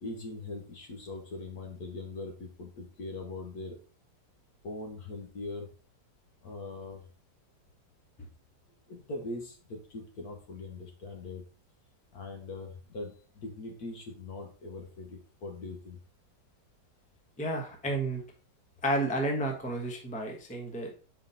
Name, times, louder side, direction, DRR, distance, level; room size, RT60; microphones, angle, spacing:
voice 1, 0.0-3.7 4.6-5.7 6.4-7.0 8.9-11.4 12.1-15.1 15.4-16.0, left 2 dB, 60° left, 3 dB, 1.7 m, -41 dB
voice 2, 17.4-18.2 18.8-20.9, right 1 dB, 5° left, 2 dB, 0.8 m, -31 dB
5.6 x 4.9 x 4.1 m, 0.37 s
omnidirectional pair, 1.9 m